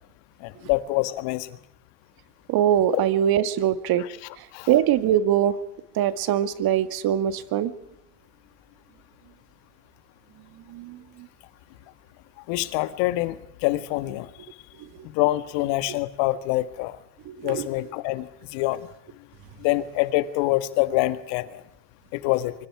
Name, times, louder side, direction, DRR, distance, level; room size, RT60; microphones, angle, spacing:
voice 1, 0.4-1.5 4.0-4.1 4.5-4.7 12.5-14.3 15.0-17.0 17.4-18.9 19.6-21.6 22.1-22.5, left 17 dB, 65° left, 12 dB, 1.8 m, -25 dB
voice 2, 2.5-4.0 4.4-5.6 6.0-7.7 10.7-11.3 14.8-14.9 17.3-17.7, right 10 dB, 50° right, 12 dB, 1.9 m, -23 dB
24.5 x 24.0 x 4.9 m, 0.80 s
supercardioid pair, 100°, 47 cm